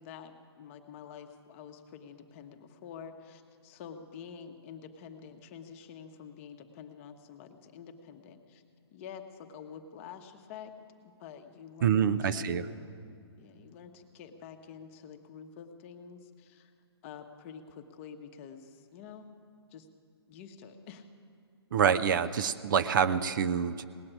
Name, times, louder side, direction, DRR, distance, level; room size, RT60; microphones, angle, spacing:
voice 1, 0.0-8.6 8.9-10.7 11.2-12.9 13.4-16.7 17.0-19.3 19.7-19.9 20.3-21.0, left 7 dB, 30° left, 6 dB, 1.0 m, -48 dB
voice 2, 11.8-12.7 21.7-23.8, right 7 dB, 50° right, 12 dB, 0.5 m, -26 dB
18.0 x 7.7 x 10.0 m, 2.5 s
hypercardioid pair, 155°, 14 cm